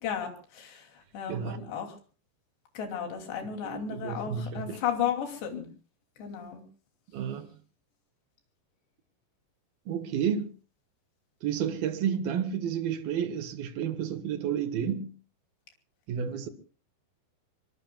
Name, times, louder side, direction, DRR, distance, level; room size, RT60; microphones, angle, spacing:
voice 1, 0.0-2.0 2.7-5.7 6.2-6.6, left 8 dB, 75° left, 5.1 m, -34 dB
voice 2, 1.3-1.7 3.6-4.8 7.1-7.5 9.9-10.5 11.4-15.1 16.1-16.5, right 8 dB, 65° right, 3.1 m, -31 dB
25.5 x 23.0 x 2.4 m
omnidirectional pair, 4.9 m